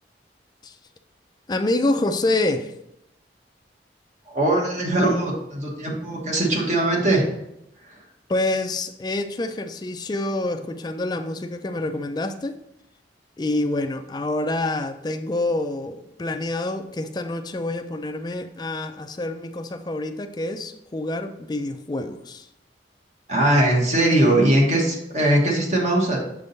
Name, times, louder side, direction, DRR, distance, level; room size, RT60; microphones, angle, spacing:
voice 1, 1.5-2.7 8.3-12.6 13.4-22.5, left 2 dB, 25° left, 8 dB, 0.4 m, -27 dB
voice 2, 4.3-7.3 23.3-26.2, right 1 dB, 40° right, -2 dB, 1.3 m, -20 dB
6.6 x 3.6 x 4.0 m, 0.82 s
head